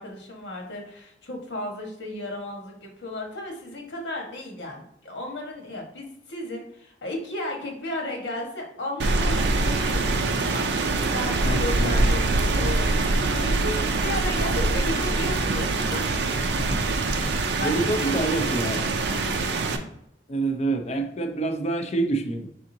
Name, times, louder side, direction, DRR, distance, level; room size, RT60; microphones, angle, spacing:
voice 1, 0.0-16.1 17.1-19.1, left 1 dB, 90° left, 0 dB, 1.3 m, -35 dB
Rain, 9.0-19.8, right 3 dB, 70° right, 0.5 m, -24 dB
voice 2, 11.4-11.9 16.6-16.8 17.6-18.9 20.3-22.5, right 2 dB, 35° left, 5 dB, 0.5 m, -27 dB
4.8 x 3.7 x 2.7 m, 0.75 s
head